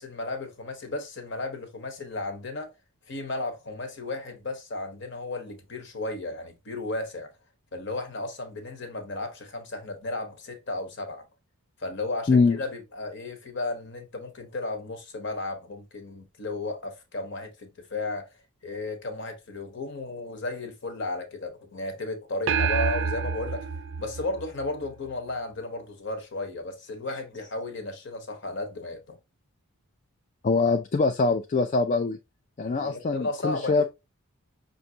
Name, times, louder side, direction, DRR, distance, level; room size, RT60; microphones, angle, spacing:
voice 1, 0.0-2.7 3.1-7.3 7.7-11.3 11.8-18.3 18.6-23.7 24.0-29.2 32.8-33.8, left 2 dB, 55° left, 1.0 m, -34 dB
voice 2, 12.3-12.6 30.4-32.2 32.6-33.8, left 4 dB, 35° left, 0.3 m, -23 dB
sound 1, 22.5-25.1, right 6 dB, 60° right, 0.4 m, -28 dB
5.5 x 2.6 x 2.7 m
head